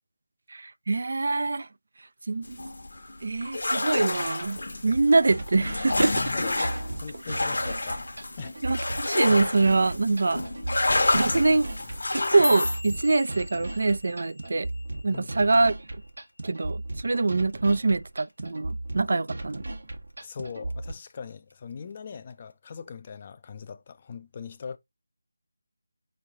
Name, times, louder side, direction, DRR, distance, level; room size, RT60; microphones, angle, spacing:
voice 1, 0.5-1.7 2.3-2.6 3.2-6.2 6.6-6.7 8.6-10.4 11.1-11.7 12.1-14.7 15.0-15.8 16.4-19.6, right 3 dB, 55° right, 0.3 m, -24 dB
sound 1, 2.4-12.8, left 2 dB, 70° left, 1.0 m, -29 dB
sound 2, 4.9-20.9, right 2 dB, 70° right, 1.1 m, -37 dB
voice 2, 6.1-8.0 8.4-8.8 15.1-15.3 20.2-24.8, left 6 dB, 30° left, 0.4 m, -40 dB
sound 3, 12.2-16.4 16.7-17.1 17.5-17.9 18.3-18.5 19.1-19.5 19.9-20.7 21.1-21.5 22.3-22.4, left 1 dB, 90° left, 0.5 m, -36 dB
4.5 x 3.2 x 3.5 m
figure-of-eight pair, 165°, 0 cm